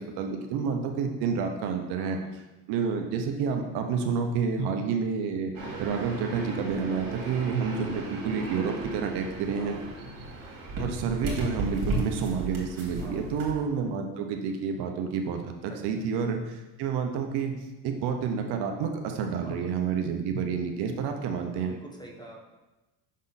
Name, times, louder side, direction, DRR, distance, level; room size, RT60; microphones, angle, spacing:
voice 1, 0.0-2.2 2.7-5.5 5.8-9.7 10.8-17.5 17.8-21.7, right 6 dB, 70° right, 4 dB, 0.8 m, -29 dB
voice 2, 2.0-2.3 6.9-7.1 9.5-10.0 13.0-13.3 15.7-16.0 19.4-19.7 21.5-22.4, right 1 dB, 10° left, 0 dB, 1.1 m, -47 dB
sound 1, 5.5-13.5, right 2 dB, 55° right, 2.0 m, -35 dB
6.2 x 3.7 x 4.0 m, 1.1 s
supercardioid pair, 85°, 41 cm